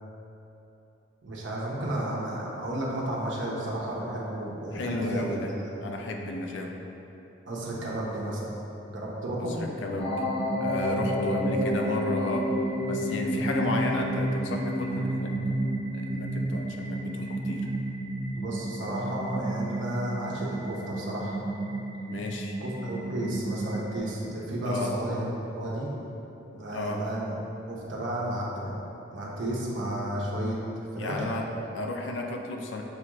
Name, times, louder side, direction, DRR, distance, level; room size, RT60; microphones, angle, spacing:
voice 1, 1.2-5.4 7.5-8.5 8.9-9.6 18.3-21.4 22.6-25.9 26.5-27.3 27.7-28.8 29.1-30.6 30.9-31.2 31.5-31.6, right 1 dB, 80° right, -4 dB, 0.8 m, -32 dB
voice 2, 4.7-5.5 5.8-6.7 9.4-10.2 10.6-12.5 12.9-15.3 15.9-17.7 22.1-22.6 24.6-24.9 26.7-27.0 31.0-31.4 31.7-32.8, left 2 dB, 75° left, 2 dB, 0.4 m, -33 dB
sound 1, 10.0-24.0, right 1 dB, 30° left, 0.8 m, -31 dB
6.4 x 2.4 x 3.0 m, 3.0 s
head